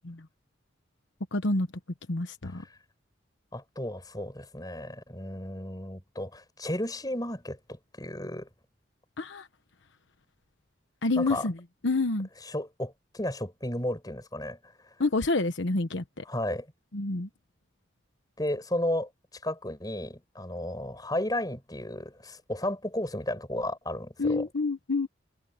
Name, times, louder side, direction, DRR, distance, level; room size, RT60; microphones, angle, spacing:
voice 1, 1.3-1.7 2.1-2.6 9.2-9.5 11.0-11.5 11.8-12.3 15.0-16.2 16.9-17.3 24.2-25.1, left 2 dB, 75° left, 1.1 m, -28 dB
voice 2, 3.5-8.5 11.2-11.5 12.4-14.6 16.3-16.7 18.4-19.1 19.4-24.5, left 1 dB, 20° left, 6.3 m, -33 dB
head